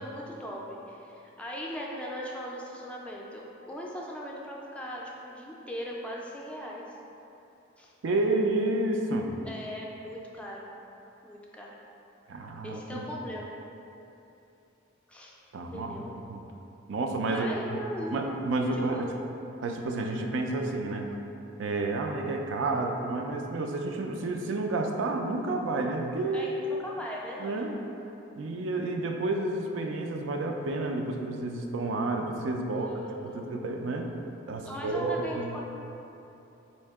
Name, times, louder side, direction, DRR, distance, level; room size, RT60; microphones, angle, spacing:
voice 1, 0.0-6.9 7.8-7.9 9.4-10.7 11.2-11.8 12.6-13.6 15.1-15.3 15.7-16.1 17.3-18.4 18.7-19.1 26.3-27.6 32.6-33.7 34.7-35.6, equal, 5° left, -3 dB, 0.3 m, -39 dB
voice 2, 8.0-9.3 12.3-13.0 15.5-15.9 16.3-16.4 16.9-17.6 18.1-19.1 19.6-21.2 21.6-26.6 27.4-27.8 28.4-32.9 33.2-34.1 34.5-35.6, right 2 dB, 85° right, 3 dB, 0.4 m, -30 dB
4.3 x 2.8 x 3.4 m, 2.9 s
head